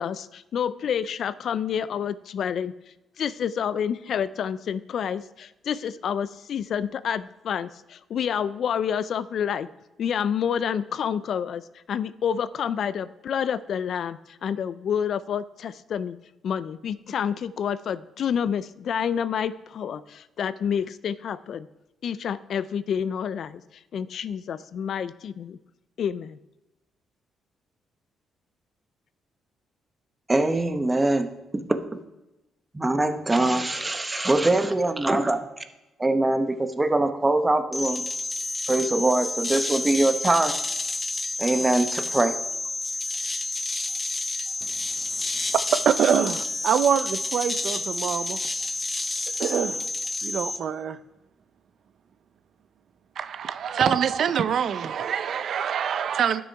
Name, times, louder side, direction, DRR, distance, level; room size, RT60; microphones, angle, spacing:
voice 1, 0.0-2.7 3.2-9.7 10.0-11.6 11.9-16.2 16.4-21.7 22.0-23.6 23.9-25.6 26.0-26.4, left 8 dB, 60° left, 0.4 m, -28 dB
voice 2, 30.3-31.3 32.7-35.5 36.0-38.0 38.7-40.5 41.4-42.3, right 2 dB, 20° right, 1.0 m, -23 dB
sound 1, 37.7-50.6, left 3 dB, 20° left, 1.2 m, -30 dB
voice 3, 46.7-47.0 47.3-47.5 48.0-48.2 49.5-49.6 53.8-54.7 55.5-55.8 56.2-56.3, right 8 dB, 60° right, 0.5 m, -21 dB
11.5 x 6.2 x 4.6 m
cardioid pair, 90°, 0 cm